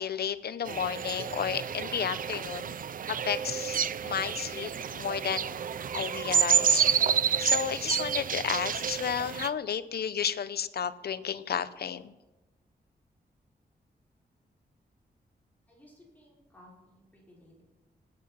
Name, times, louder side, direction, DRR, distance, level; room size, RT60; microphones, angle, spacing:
voice 1, 0.0-2.7 3.1-5.6 5.9-6.9 7.4-12.1, left 8 dB, 70° left, 14 dB, 0.7 m, -32 dB
sound 1, 0.7-9.5, right 7 dB, 55° right, 0.5 m, -29 dB
voice 2, 15.7-17.6, left 1 dB, 10° left, -5 dB, 4.7 m, -57 dB
19.0 x 8.6 x 5.7 m, 1.1 s
wide cardioid pair, 155°, 17 cm